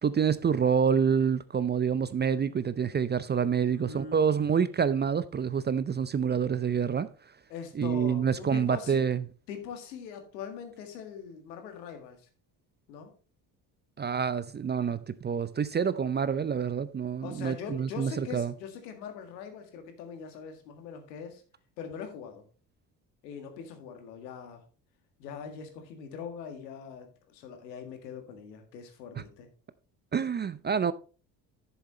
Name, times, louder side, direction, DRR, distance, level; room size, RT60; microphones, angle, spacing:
voice 1, 0.0-7.1 7.7-9.2 14.0-18.5 29.2-29.3 30.1-30.9, right 7 dB, 20° right, 0.5 m, -27 dB
voice 2, 3.7-4.2 7.5-9.0 9.5-12.3 12.9-13.1 17.2-21.4 21.8-22.4 23.2-24.6 25.2-29.5, left 7 dB, 80° left, 1.9 m, -42 dB
11.0 x 7.1 x 3.1 m
hypercardioid pair, 55°, 49 cm